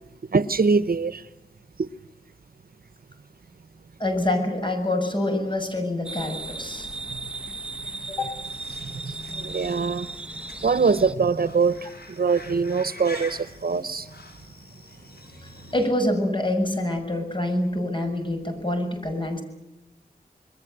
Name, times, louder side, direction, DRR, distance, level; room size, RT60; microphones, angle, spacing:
voice 1, 0.3-1.2 9.4-10.1 10.6-11.8 12.2-14.0, right 5 dB, 65° right, 14 dB, 0.9 m, -22 dB
voice 2, 4.0-6.9 8.1-8.4 15.7-19.4, left 1 dB, 30° left, 5 dB, 7.0 m, -26 dB
sound 1, 6.0-11.1, right 3 dB, 5° right, 1.3 m, -36 dB
sound 2, 8.4-15.9, left 2 dB, 85° left, 5.5 m, -45 dB
28.0 x 21.0 x 7.9 m, 0.93 s
wide cardioid pair, 75°, 16 cm